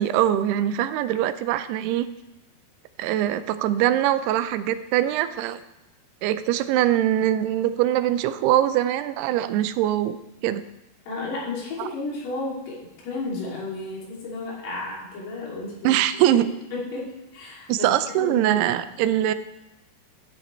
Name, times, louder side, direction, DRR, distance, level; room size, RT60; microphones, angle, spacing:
voice 1, 0.0-2.1 3.0-5.6 6.2-10.2 10.4-10.7 11.8-11.9 15.8-16.5 17.7-19.3, right 12 dB, 85° right, 13 dB, 2.6 m, -22 dB
voice 2, 11.1-16.4 16.7-17.9 18.1-18.7, left 2 dB, 85° left, -5 dB, 5.0 m, -33 dB
14.0 x 9.7 x 3.3 m, 0.97 s
omnidirectional pair, 4.6 m